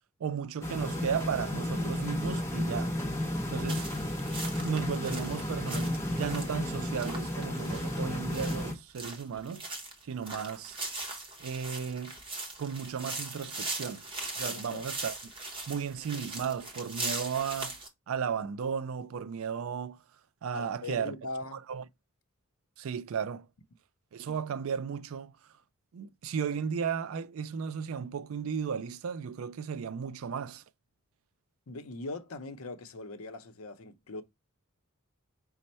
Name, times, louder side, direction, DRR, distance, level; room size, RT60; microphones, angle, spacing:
voice 1, 0.2-2.9 3.5-3.9 4.6-9.6 10.0-10.8 11.4-12.2 12.6-14.0 14.4-15.2 15.7-17.8 18.1-20.0 20.4-21.1 21.5-21.8 22.8-23.5 24.1-25.3 25.9-30.6, right 7 dB, 70° right, 0.4 m, -35 dB
sound 1, 0.6-8.7, left 1 dB, 15° left, 0.8 m, -33 dB
sound 2, 3.7-17.9, right 2 dB, 25° right, 1.0 m, -40 dB
voice 2, 14.5-14.9 20.5-21.6 31.7-34.2, left 2 dB, 80° left, 0.7 m, -41 dB
5.2 x 2.1 x 4.2 m
head